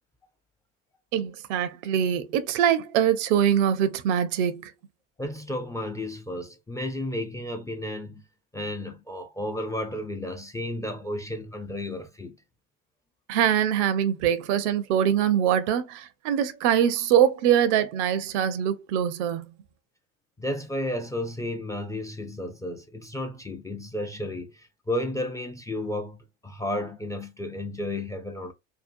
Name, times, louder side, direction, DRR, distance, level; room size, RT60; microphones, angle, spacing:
voice 1, 1.1-4.7 13.3-19.5, right 9 dB, 70° right, 0.6 m, -23 dB
voice 2, 5.2-8.2 8.5-12.4 20.4-28.5, left 1 dB, 10° left, 0.3 m, -33 dB
2.7 x 2.1 x 2.5 m
hypercardioid pair, 75°, 37 cm